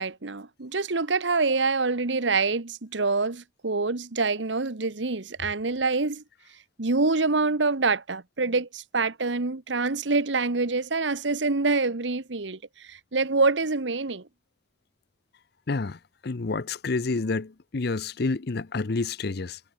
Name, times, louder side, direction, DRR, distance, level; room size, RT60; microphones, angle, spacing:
voice 1, 0.0-6.2 6.8-12.6 12.9-14.2, right 3 dB, 75° right, 1.3 m, -26 dB
voice 2, 15.7-16.0 16.2-19.6, left 3 dB, 60° left, 0.7 m, -29 dB
head